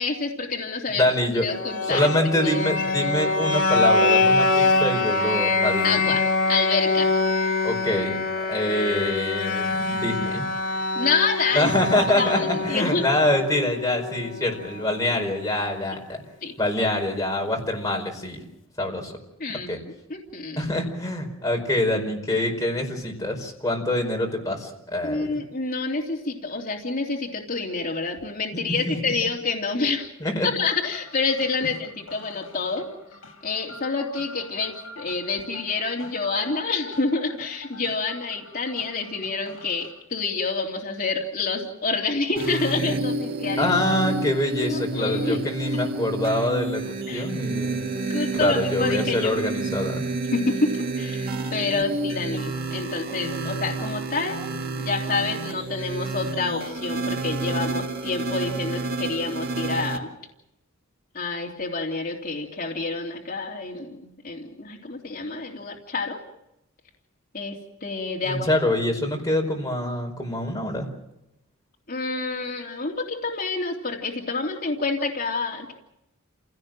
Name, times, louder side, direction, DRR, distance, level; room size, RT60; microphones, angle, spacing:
voice 1, 0.0-1.1 1.4-2.1 2.4-2.8 5.8-7.2 10.9-11.7 12.2-13.0 16.4-16.5 19.4-20.7 25.0-30.1 30.4-32.9 33.4-43.7 44.7-45.4 45.7-45.9 47.1-47.3 47.9-49.4 50.3-54.4 54.8-60.1 61.1-66.2 67.3-68.5 71.9-75.7, left 4 dB, 45° left, -1 dB, 3.0 m, -28 dB
voice 2, 0.9-1.5 1.9-6.0 7.6-8.2 8.5-10.4 11.5-16.2 16.6-18.4 18.8-19.1 19.5-19.8 20.6-25.4 28.9-29.0 30.2-30.5 43.6-46.8 47.1-47.8 48.4-50.0 68.2-70.9, left 1 dB, 15° left, 2 dB, 4.9 m, -25 dB
sound 1, 1.5-15.4, left 3 dB, 65° left, 2.7 m, -24 dB
sound 2, 30.7-39.9, left 2 dB, 85° left, 5.6 m, -45 dB
sound 3, 42.4-60.0, right 2 dB, 45° right, 1.9 m, -29 dB
28.0 x 17.5 x 7.6 m, 0.87 s
head